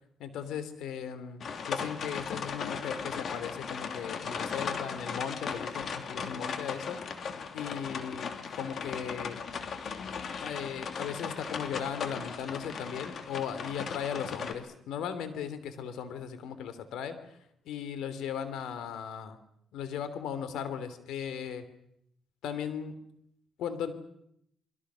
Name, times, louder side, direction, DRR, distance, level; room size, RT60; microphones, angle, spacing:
voice 1, 0.2-9.4 10.4-17.4 17.6-19.4 19.7-21.6 22.4-22.9 23.6-23.9, left 8 dB, 85° left, 12 dB, 3.0 m, -37 dB
sound 1, 1.4-14.5, left 6 dB, 55° left, 2.9 m, -37 dB
29.0 x 22.0 x 6.3 m, 0.75 s
cardioid pair, 90°, 0 cm